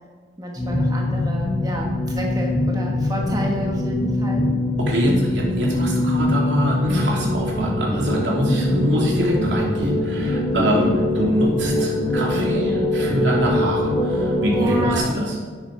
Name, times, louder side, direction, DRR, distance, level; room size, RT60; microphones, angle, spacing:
voice 1, 0.4-4.4 10.6-10.9 11.7-11.8 14.6-15.1, right 1 dB, 20° right, -1 dB, 1.3 m, -29 dB
sound 1, 0.5-15.0, left 1 dB, 5° right, 4.0 m, -23 dB
voice 2, 4.8-15.4, equal, 80° right, -2 dB, 3.2 m, -24 dB
10.5 x 9.1 x 5.6 m, 1.5 s
head